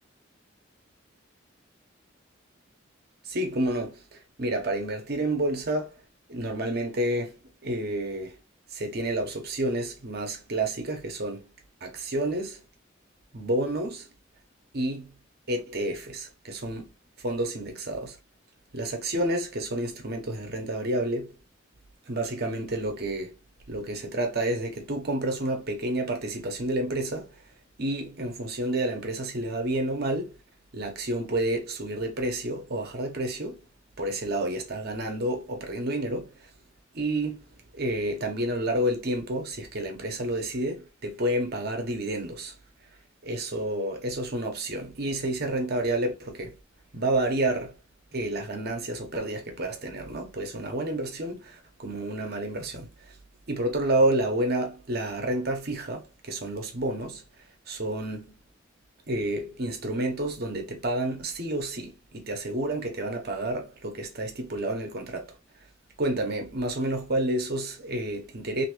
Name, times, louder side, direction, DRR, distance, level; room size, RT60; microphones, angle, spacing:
voice 1, 3.2-6.0 6.3-7.4 7.6-8.3 8.7-11.5 11.8-12.6 13.3-14.1 14.7-15.1 15.5-16.9 17.2-18.2 18.7-21.3 22.1-23.3 23.7-27.3 27.8-30.4 30.7-33.7 34.0-36.4 36.9-37.4 37.7-42.5 43.2-46.6 46.9-47.8 48.1-52.9 53.5-57.2 57.7-58.3 59.1-65.4 66.0-68.7, right 1 dB, 55° right, 1.0 m, -29 dB
3.2 x 2.8 x 3.0 m
head